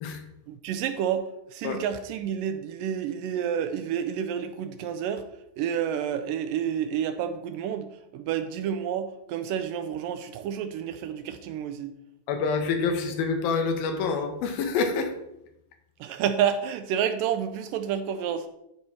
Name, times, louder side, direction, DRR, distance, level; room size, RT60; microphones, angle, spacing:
voice 1, 0.5-5.3 5.6-11.9 16.0-18.5, right 9 dB, 80° right, 9 dB, 2.1 m, -29 dB
voice 2, 12.3-15.1, left 4 dB, 85° left, 5 dB, 2.9 m, -27 dB
12.5 x 4.3 x 4.8 m, 0.83 s
omnidirectional pair, 4.1 m